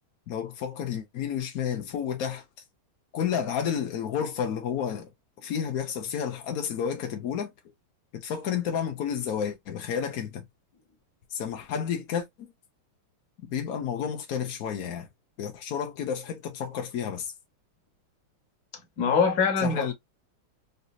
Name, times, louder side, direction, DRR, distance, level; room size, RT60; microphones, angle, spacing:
voice 1, 0.3-2.4 3.1-5.1 5.4-7.5 8.1-10.4 11.3-12.5 13.5-15.1 15.4-17.3 19.6-19.9, left 8 dB, 75° left, 0.8 m, -31 dB
voice 2, 19.0-19.9, left 5 dB, 50° left, 1.1 m, -23 dB
4.0 x 2.7 x 2.2 m
omnidirectional pair, 2.3 m